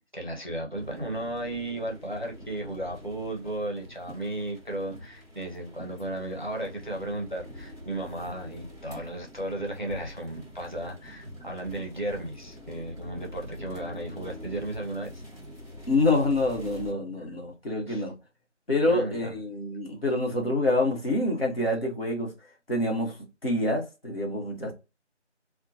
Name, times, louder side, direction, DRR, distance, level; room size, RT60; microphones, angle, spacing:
voice 1, 0.0-15.2 17.9-18.1 18.9-19.3, right 1 dB, 40° right, 0.6 m, -35 dB
sound 1, 0.8-16.9, left 1 dB, 30° left, 1.2 m, -45 dB
voice 2, 15.9-18.1 18.7-22.3 22.7-23.2 23.4-24.7, left 2 dB, 50° left, 1.0 m, -26 dB
2.6 x 2.1 x 2.7 m
figure-of-eight pair, 175°, 36 cm